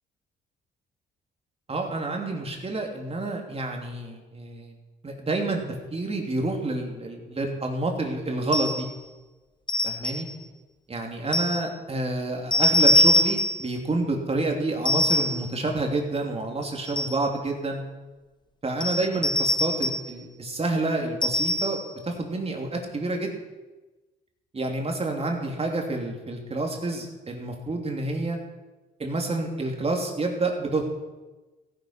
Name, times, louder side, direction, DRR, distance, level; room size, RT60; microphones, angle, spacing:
voice 1, 1.7-4.7 5.0-5.6 5.9-8.9 9.8-10.3 10.9-17.8 18.6-21.8 22.0-23.3 24.5-28.4 29.0-30.8, right 2 dB, 30° right, 2 dB, 3.1 m, -28 dB
sound 1, 8.5-8.9 9.7-10.3 11.3-11.7 12.5-13.7 14.8-15.5 16.6-17.3 18.8-20.1 21.2-21.9, left 1 dB, 20° left, 1.0 m, -23 dB
15.5 x 10.0 x 5.9 m, 1.2 s
cardioid pair, 90°, 20 cm